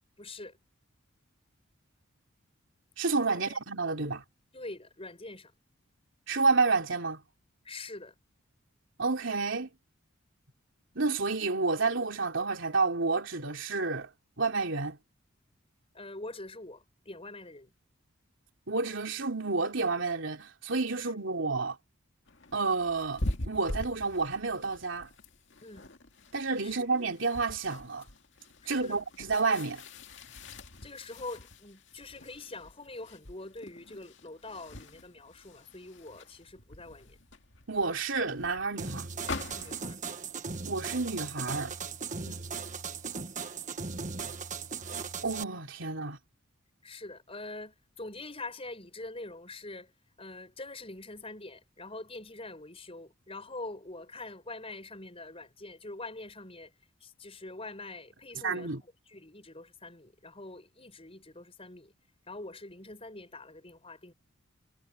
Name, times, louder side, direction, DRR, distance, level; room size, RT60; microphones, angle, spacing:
voice 1, 0.2-0.6 3.3-3.6 4.5-5.5 7.6-8.1 15.9-17.7 21.0-21.1 25.6-25.9 26.6-26.7 28.6-29.0 30.8-37.2 39.5-40.0 42.2-42.5 46.8-49.9 50.2-56.7 57.0-61.9 62.3-64.1, left 2 dB, 25° left, 6.2 m, -44 dB
voice 2, 3.0-4.2 6.3-7.2 9.0-9.7 10.9-14.1 14.4-15.0 18.7-21.8 22.5-25.1 26.3-28.0 28.7-29.8 37.7-39.1 40.6-41.7 45.2-46.2 58.4-58.8, right 4 dB, 65° right, 3.2 m, -30 dB
sound 1, 22.3-40.0, left 1 dB, 60° left, 2.3 m, -43 dB
sound 2, 38.8-45.4, right 5 dB, 35° right, 1.5 m, -38 dB
head